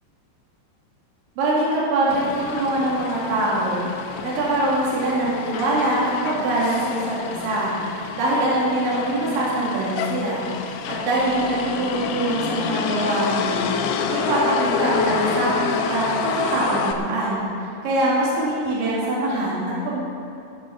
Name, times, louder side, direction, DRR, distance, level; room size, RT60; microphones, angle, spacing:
voice 1, 1.4-3.9 4.2-7.7 8.1-10.4 10.9-13.7 14.1-17.4 17.8-20.0, right 1 dB, 70° right, -7 dB, 5.1 m, -23 dB
Motor vehicle (road), 2.1-16.9, left 6 dB, 80° left, 2.5 m, -28 dB
16.5 x 7.9 x 7.3 m, 2.7 s
omnidirectional pair, 5.6 m